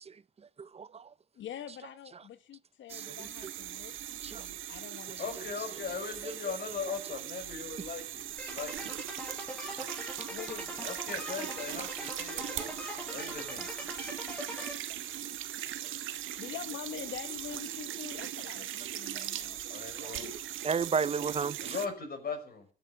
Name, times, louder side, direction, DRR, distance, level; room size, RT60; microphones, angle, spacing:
voice 1, 0.6-1.1 2.9-3.2 3.4-3.5 4.2-4.5 9.8-9.9 12.3-12.7 19.1-19.2 20.0-20.2 20.6-21.7, right 6 dB, 30° right, 0.6 m, -33 dB
voice 2, 1.4-5.6 10.3-10.8 16.3-19.6, left 9 dB, 70° left, 1.2 m, -45 dB
sound 1, 2.9-21.9, right 12 dB, 80° right, 1.4 m, -40 dB
voice 3, 5.2-8.3 8.5-8.9 10.8-13.7 19.7-20.3 21.6-22.7, left 5 dB, 50° left, 5.7 m, -39 dB
sound 2, 8.4-14.7, left 1 dB, 5° left, 5.1 m, -42 dB
14.0 x 8.9 x 9.5 m
cardioid pair, 90°, 20 cm